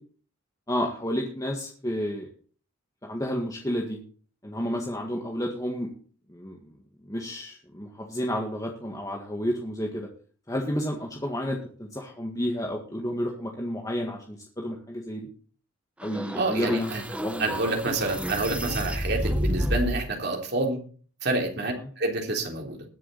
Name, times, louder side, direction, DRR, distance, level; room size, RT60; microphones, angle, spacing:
voice 1, 0.7-2.3 3.0-4.0 4.4-5.9 6.3-6.6 7.1-10.1 10.5-15.3 16.0-17.5 21.7-21.9, equal, 15° left, 0 dB, 1.8 m, -31 dB
sound 1, 16.0-20.0, equal, 5° right, 0.9 m, -30 dB
voice 2, 16.4-17.0 17.4-20.8 21.2-22.8, right 2 dB, 55° right, 1 dB, 3.6 m, -28 dB
21.0 x 7.2 x 4.2 m, 0.41 s
head